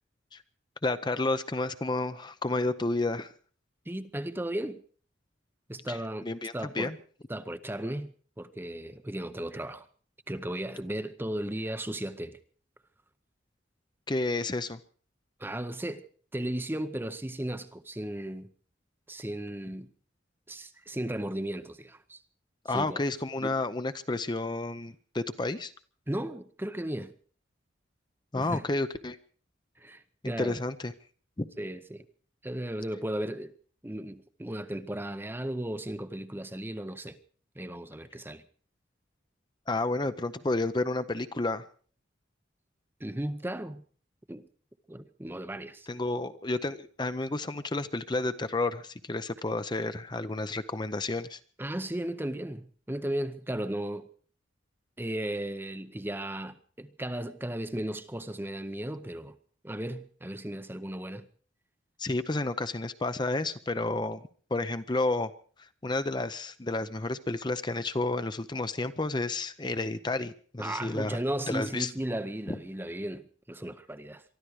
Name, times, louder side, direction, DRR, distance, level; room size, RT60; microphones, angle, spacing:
voice 1, 0.8-3.3 5.9-6.0 6.2-7.0 14.1-14.8 22.6-25.7 28.3-29.2 30.2-30.9 31.4-31.5 39.7-41.6 45.9-51.4 62.0-64.2 64.5-65.3 65.6-71.2 71.5-71.9 72.5-72.6, left 2 dB, 25° left, 0.7 m, -31 dB
voice 2, 3.9-4.8 5.7-6.9 7.3-9.9 10.3-12.4 15.4-16.0 16.3-18.5 19.1-19.9 20.5-22.2 22.7-23.0 23.4-23.6 26.1-27.1 28.3-28.7 29.8-30.6 31.6-32.1 32.4-33.5 33.8-37.2 37.6-38.4 43.0-43.8 44.3-44.5 44.9-45.9 51.6-54.1 55.0-59.4 59.6-61.3 70.6-74.2, right 1 dB, 10° right, 0.7 m, -35 dB
23.5 x 12.5 x 4.8 m
head